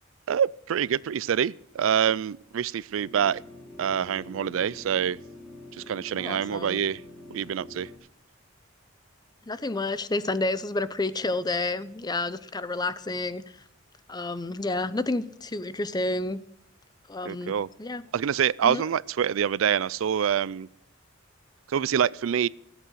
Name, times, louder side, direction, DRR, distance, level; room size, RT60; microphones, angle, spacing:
voice 1, 0.3-3.4 3.8-5.2 5.7-7.0 7.3-7.9 17.2-17.7 18.1-20.7 21.7-22.5, right 8 dB, 75° right, 0.4 m, -26 dB
sound 1, 2.9-8.0, left 1 dB, ahead, 3.2 m, -46 dB
voice 2, 6.2-6.8 9.5-13.4 14.1-16.4 17.1-17.5 17.8-18.0 18.6-18.8, left 2 dB, 20° left, 0.6 m, -30 dB
15.5 x 8.2 x 6.3 m
head